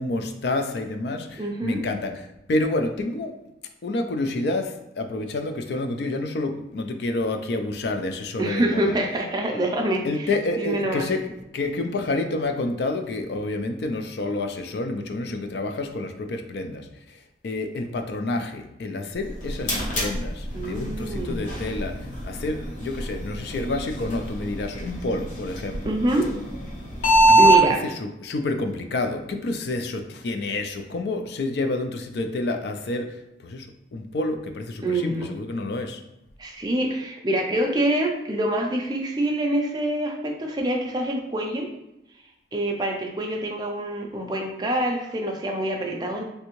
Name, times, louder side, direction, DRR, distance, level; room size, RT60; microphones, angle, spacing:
voice 1, 0.0-3.4 3.8-8.9 10.0-16.9 17.4-25.9 27.3-27.8 28.0-33.1 33.4-36.0, left 2 dB, 65° left, 6 dB, 0.3 m, -29 dB
voice 2, 1.4-1.8 8.4-10.3 10.6-11.1 20.5-21.4 25.9-26.4 27.4-27.9 34.8-35.3 36.4-41.7 42.5-46.2, right 1 dB, 20° right, 1 dB, 0.4 m, -26 dB
sound 1, 19.2-27.6, right 2 dB, 45° left, 0.8 m, -24 dB
3.3 x 2.6 x 3.0 m, 0.89 s
head